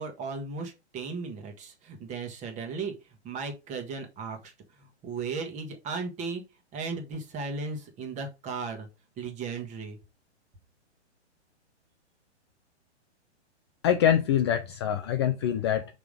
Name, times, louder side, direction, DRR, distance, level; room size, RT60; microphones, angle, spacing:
voice 1, 0.0-2.9 3.2-4.5 5.0-6.4 6.7-8.9 9.2-10.0, right 4 dB, 20° right, 1.3 m, -36 dB
voice 2, 13.8-15.9, left 9 dB, 25° left, 0.4 m, -24 dB
5.9 x 3.6 x 5.0 m
hypercardioid pair, 140°, 35 cm